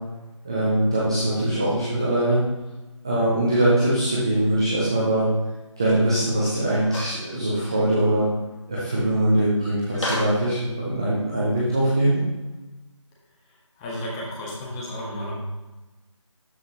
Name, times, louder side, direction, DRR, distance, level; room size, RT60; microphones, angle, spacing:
voice 1, 0.4-2.4 3.0-5.3 5.8-8.3 8.7-12.2, right 1 dB, 10° right, -6 dB, 0.5 m, -22 dB
sound 1, 6.9-7.2 7.7-7.8 9.9-10.4, left 1 dB, 70° left, 2.4 m, -30 dB
voice 2, 13.8-15.3, left 1 dB, 10° left, -5 dB, 1.3 m, -32 dB
12.5 x 5.4 x 2.9 m, 1.1 s
figure-of-eight pair, 165°, 16 cm